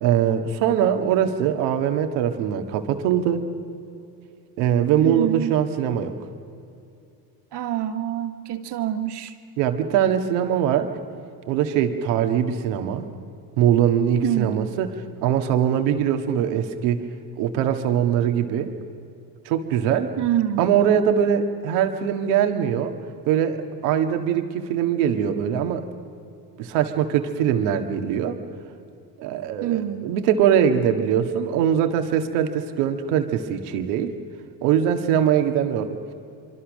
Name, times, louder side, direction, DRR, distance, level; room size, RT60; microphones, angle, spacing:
voice 1, 0.0-3.4 4.6-6.1 9.6-10.9 11.5-13.1 13.6-17.0 17.4-18.7 19.5-20.1 20.6-23.0 23.3-25.9 26.6-28.4 29.2-34.1 34.6-36.1, right 9 dB, 90° right, 6 dB, 1.8 m, -22 dB
voice 2, 5.0-5.5 7.5-9.3 14.2-14.6 20.2-20.6 29.6-30.1, right 11 dB, 60° right, 7 dB, 1.8 m, -26 dB
25.0 x 24.5 x 6.4 m, 2.6 s
supercardioid pair, 90°, 46 cm